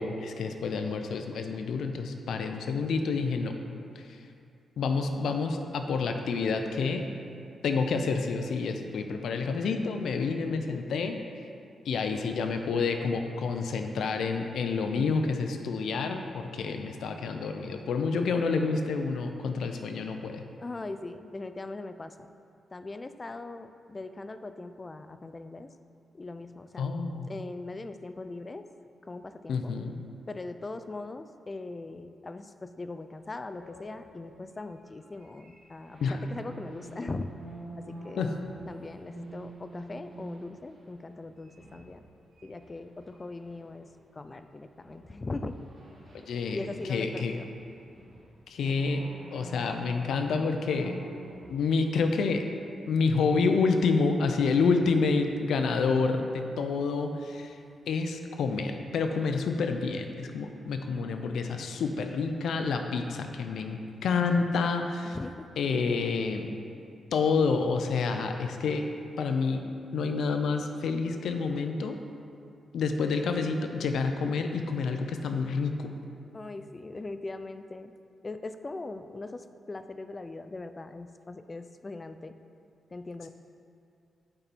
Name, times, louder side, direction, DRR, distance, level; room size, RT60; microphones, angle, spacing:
voice 1, 0.0-3.6 4.0-4.1 4.8-7.0 7.6-11.2 11.9-20.4 26.8-27.3 29.5-29.9 36.0-36.2 38.2-38.3 46.1-46.6 46.9-47.3 48.5-51.0 51.5-52.4 52.9-57.6 57.9-65.2 65.6-66.5 67.1-68.9 69.2-69.6 69.9-72.0 72.7-75.9, left 4 dB, 80° left, 5 dB, 0.5 m, -28 dB
voice 2, 20.6-22.1 22.7-25.7 26.1-26.8 27.3-28.7 29.1-29.7 30.3-37.3 37.8-38.3 38.7-42.0 42.4-43.9 44.2-45.5 46.5-47.5 65.1-65.5 76.3-77.9 78.2-82.3 82.9-83.3, left 2 dB, 25° left, 9 dB, 0.3 m, -40 dB
sound 1, 33.4-44.4 44.8-51.8, right 2 dB, 40° right, 1.7 m, -48 dB
8.8 x 4.4 x 4.1 m, 2.5 s
cardioid pair, 110°, 0 cm